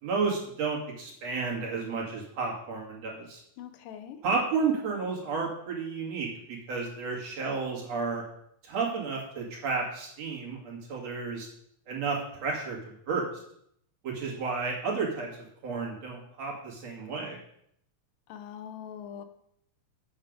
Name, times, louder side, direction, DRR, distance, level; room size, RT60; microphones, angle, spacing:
voice 1, 0.0-3.4 4.2-6.3 6.7-8.2 8.6-11.5 11.9-12.8 13.1-13.3 14.0-15.3 15.6-17.4, right 4 dB, 55° right, -2 dB, 3.1 m, -32 dB
voice 2, 3.6-4.2 18.3-19.2, left 9 dB, 85° left, 9 dB, 2.5 m, -42 dB
8.9 x 7.7 x 5.2 m, 0.71 s
omnidirectional pair, 3.9 m